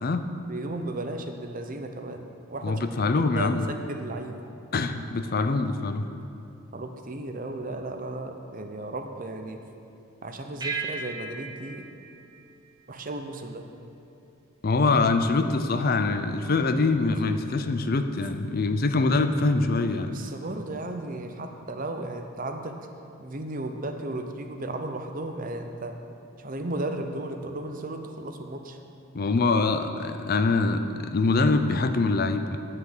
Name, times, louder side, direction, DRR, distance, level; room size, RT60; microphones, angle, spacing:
voice 1, 0.5-2.9 3.1-4.4 6.7-9.6 10.2-11.9 12.9-13.6 20.1-22.8 23.2-26.0 26.4-28.8, right 2 dB, 40° right, 5 dB, 0.7 m, -35 dB
voice 2, 2.6-3.7 4.7-6.1 14.6-20.2 29.1-32.6, left 3 dB, 45° left, 9 dB, 0.5 m, -24 dB
sound 1, 10.6-13.4, right 4 dB, 20° right, 1.0 m, -37 dB
9.6 x 6.6 x 7.2 m, 2.7 s
head